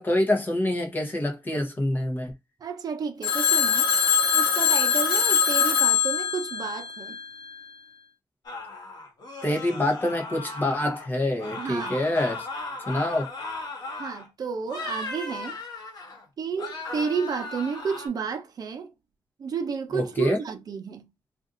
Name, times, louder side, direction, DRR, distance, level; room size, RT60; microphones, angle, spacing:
voice 1, 0.0-2.3 9.4-12.5 12.9-13.3 19.9-20.4, left 1 dB, 25° left, 0.9 m, -26 dB
voice 2, 2.6-3.9 4.3-7.2 11.6-12.0 14.0-15.6 16.4-18.9 19.4-21.0, right 6 dB, 50° right, 0.7 m, -31 dB
Telephone, 3.2-7.5, left 7 dB, 80° left, 0.9 m, -23 dB
sound 1, 8.4-11.1 11.4-14.3 14.6-16.2 16.6-18.1, left 2 dB, 55° left, 1.3 m, -37 dB
2.6 x 2.5 x 3.8 m
wide cardioid pair, 140°, 8 cm